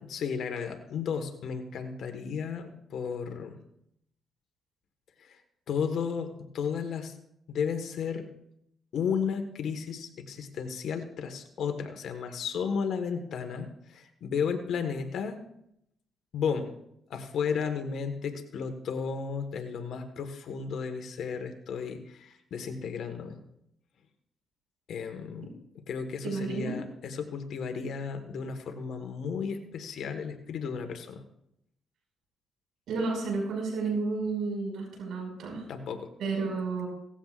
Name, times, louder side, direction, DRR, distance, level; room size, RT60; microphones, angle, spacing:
voice 1, 0.0-3.6 5.2-5.4 5.7-7.2 7.5-8.3 8.9-15.4 16.3-16.7 17.1-23.4 24.9-31.2 35.7-36.1, left 6 dB, 70° left, 6 dB, 1.6 m, -33 dB
voice 2, 26.2-26.7 32.9-35.6 36.2-36.9, right 4 dB, 75° right, 0 dB, 6.0 m, -31 dB
18.0 x 14.5 x 2.5 m, 0.76 s
cardioid pair, 90°, 0 cm